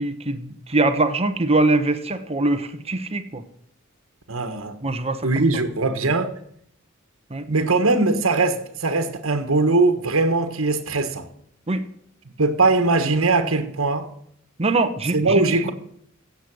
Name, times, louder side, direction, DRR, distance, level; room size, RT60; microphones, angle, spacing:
voice 1, 0.0-3.4 4.8-5.4 7.3-7.5 11.7-11.8 14.6-15.7, right 2 dB, 30° right, 1.1 m, -23 dB
voice 2, 4.3-4.8 5.2-6.3 7.5-11.3 12.4-14.1 15.1-15.7, right 3 dB, 75° right, 1.4 m, -20 dB
15.5 x 8.1 x 6.3 m
head